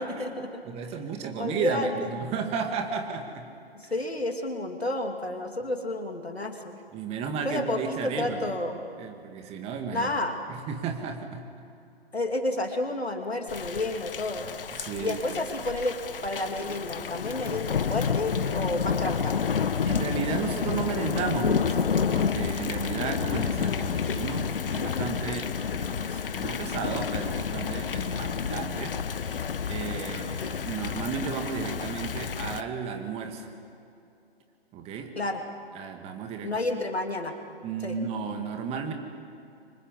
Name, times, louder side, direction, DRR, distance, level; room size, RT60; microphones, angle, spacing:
voice 1, 0.0-0.6 1.4-2.3 3.7-6.8 7.4-8.8 9.9-10.4 12.1-14.5 15.0-19.4 35.1-35.4 36.4-37.4 37.8-38.0, left 2 dB, 85° left, 4 dB, 2.9 m, -30 dB
voice 2, 0.6-3.5 3.8-3.9 6.9-8.6 9.0-10.1 10.5-11.5 14.8-15.2 19.8-29.0 29.7-33.5 34.7-35.1 35.7-36.6 37.6-38.9, right 6 dB, 20° right, 4 dB, 2.0 m, -33 dB
Thunder / Rain, 13.5-32.6, left 7 dB, 60° left, 1.1 m, -30 dB
30.0 x 25.0 x 5.5 m, 2.6 s
figure-of-eight pair, 130°, 31 cm